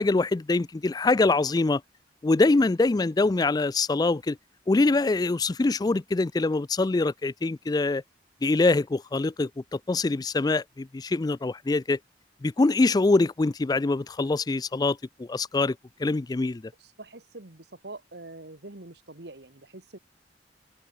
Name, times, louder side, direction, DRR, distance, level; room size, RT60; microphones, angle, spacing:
voice 1, 0.0-1.8 2.2-4.4 4.7-8.0 8.4-9.5 9.9-12.0 12.4-16.6, left 3 dB, 20° left, 0.3 m, -24 dB
voice 2, 16.8-20.0, right 2 dB, 70° right, 1.9 m, -44 dB
head